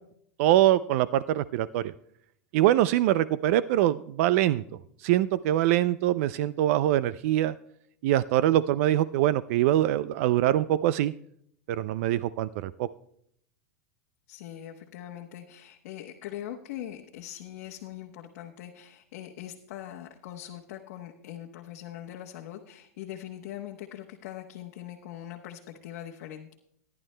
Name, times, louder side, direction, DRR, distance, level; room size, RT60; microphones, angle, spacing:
voice 1, 0.4-1.9 2.5-4.6 5.0-7.5 8.0-11.1 11.7-12.9, right 13 dB, 65° right, 16 dB, 0.4 m, -24 dB
voice 2, 14.3-26.5, left 12 dB, 70° left, 0 dB, 1.0 m, -42 dB
18.0 x 10.5 x 2.2 m, 0.70 s
supercardioid pair, 130°, 8 cm